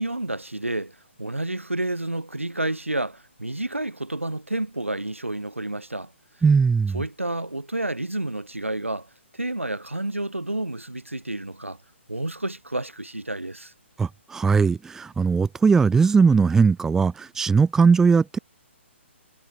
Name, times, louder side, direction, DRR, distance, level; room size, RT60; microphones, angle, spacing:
voice 1, 0.0-6.1 6.9-11.8 12.1-13.7, right 1 dB, 85° right, 3.2 m, -30 dB
voice 2, 6.4-7.0 14.0-18.4, right 5 dB, 5° right, 0.7 m, -19 dB
figure-of-eight pair, 130°, 7 cm